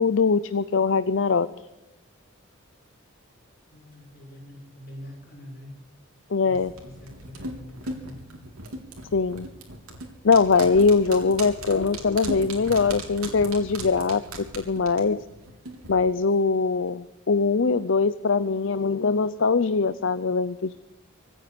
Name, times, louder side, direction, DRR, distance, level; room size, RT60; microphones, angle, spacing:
voice 1, 0.0-1.5 6.3-6.7 9.1-9.5 10.2-14.2 14.6-15.2 15.9-20.7, left 4 dB, 60° left, 14 dB, 0.5 m, -22 dB
voice 2, 3.7-5.7 6.4-8.4, left 1 dB, 45° left, -1 dB, 6.5 m, -44 dB
sound 1, 6.5-15.9 16.2-16.3, right 1 dB, 90° right, 3.6 m, -37 dB
25.5 x 9.5 x 5.2 m, 1.0 s
head